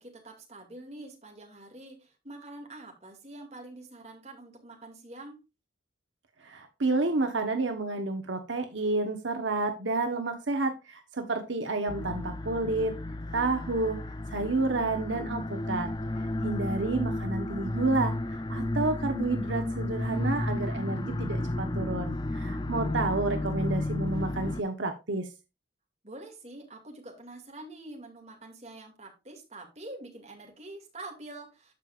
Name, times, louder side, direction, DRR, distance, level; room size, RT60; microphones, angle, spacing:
voice 1, 0.0-5.4 15.7-16.5 16.8-17.2 26.0-31.7, right 2 dB, 35° right, 1 dB, 2.3 m, -46 dB
voice 2, 6.4-13.0 13.3-14.0 14.3-15.9 16.4-18.1 18.5-25.3, right 3 dB, 75° right, 6 dB, 1.0 m, -30 dB
sound 1, 11.9-24.6, left 1 dB, 20° left, 0.5 m, -32 dB
13.5 x 5.0 x 2.5 m, 0.26 s
head